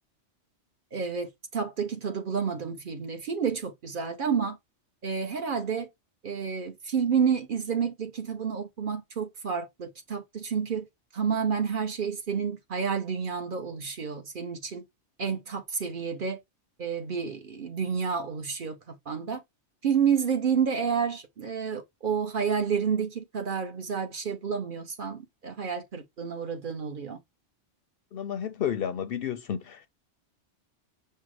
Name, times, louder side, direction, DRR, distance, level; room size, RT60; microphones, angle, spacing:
voice 1, 0.9-4.6 5.0-5.9 6.2-10.9 11.1-14.8 15.2-16.4 16.8-19.4 19.8-27.2, right 6 dB, 50° right, 0.9 m, -30 dB
voice 2, 28.1-29.9, left 9 dB, 60° left, 0.7 m, -31 dB
5.5 x 2.0 x 4.7 m
omnidirectional pair, 1.2 m